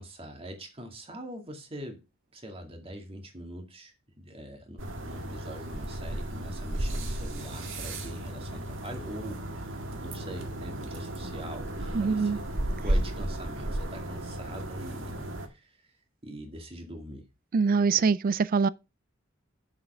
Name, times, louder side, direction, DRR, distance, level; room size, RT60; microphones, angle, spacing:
voice 1, 0.0-2.0 2.3-12.5 12.8-15.9 16.2-17.3, equal, 30° right, 2.2 m, -43 dB
sound 1, 4.8-15.5, right 1 dB, 70° right, 1.8 m, -34 dB
voice 2, 11.9-12.4 17.5-18.7, right 5 dB, 45° right, 0.4 m, -24 dB
7.2 x 6.7 x 5.6 m
head